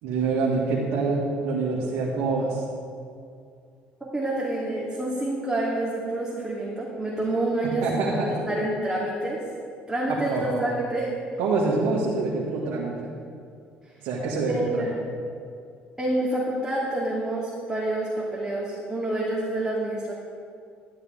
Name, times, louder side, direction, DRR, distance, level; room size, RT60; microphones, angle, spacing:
voice 1, 0.0-2.6 7.6-8.4 10.1-10.7 11.4-13.1 14.0-14.8, right 3 dB, 75° right, -5 dB, 1.9 m, -26 dB
voice 2, 4.0-9.4 9.9-11.1 14.5-14.9 16.0-20.2, right 1 dB, 10° right, -6 dB, 2.4 m, -28 dB
12.0 x 10.5 x 3.8 m, 2.4 s
supercardioid pair, 75°, 4 cm